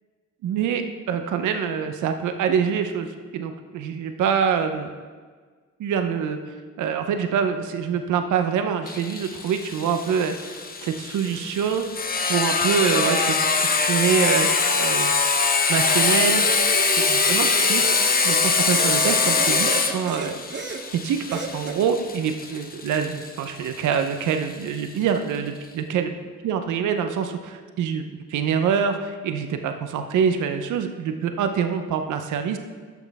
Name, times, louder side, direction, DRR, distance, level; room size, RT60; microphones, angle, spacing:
voice 1, 0.4-4.9 5.8-6.4 6.8-11.9 12.3-14.5 14.8-15.1 15.7-16.4 17.0-17.9 18.2-20.3 20.9-26.1 26.4-28.0 28.3-32.6, right 7 dB, 80° right, 7 dB, 0.8 m, -25 dB
Sawing, 8.9-24.3, left 4 dB, 30° left, 0.9 m, -23 dB
sound 1, 16.3-18.0 18.6-20.9 21.3-21.8, right 4 dB, 35° right, 0.9 m, -32 dB
13.0 x 6.2 x 3.5 m, 1.5 s
cardioid pair, 90°, 30 cm